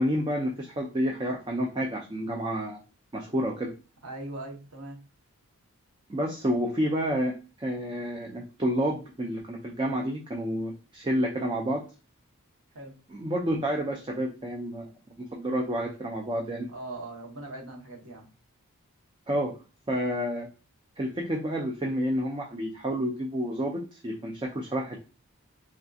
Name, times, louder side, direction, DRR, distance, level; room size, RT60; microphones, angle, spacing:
voice 1, 0.0-2.8 3.1-3.7 6.1-11.8 13.2-16.7 19.3-19.5 19.9-20.5 21.0-25.0, equal, 20° right, 0 dB, 0.4 m, -29 dB
voice 2, 4.0-5.0 12.7-13.0 16.7-18.3, right 2 dB, 75° right, 0 dB, 1.0 m, -40 dB
3.4 x 2.6 x 2.3 m, 0.32 s
head